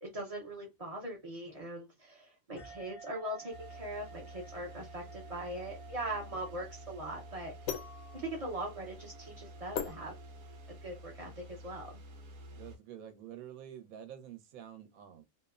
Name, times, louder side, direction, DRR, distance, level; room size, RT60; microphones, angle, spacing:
voice 1, 0.0-7.5 8.1-10.2 10.7-11.9, right 1 dB, 40° right, 0.5 m, -41 dB
sound 1, 2.6-11.6, right 5 dB, 55° left, 0.4 m, -55 dB
sound 2, 3.5-12.8, equal, 60° right, 0.8 m, -50 dB
sound 3, 5.6-10.8, left 8 dB, 85° left, 1.1 m, -43 dB
voice 2, 12.5-15.2, right 10 dB, 80° right, 1.1 m, -48 dB
2.7 x 2.1 x 2.3 m
omnidirectional pair, 1.5 m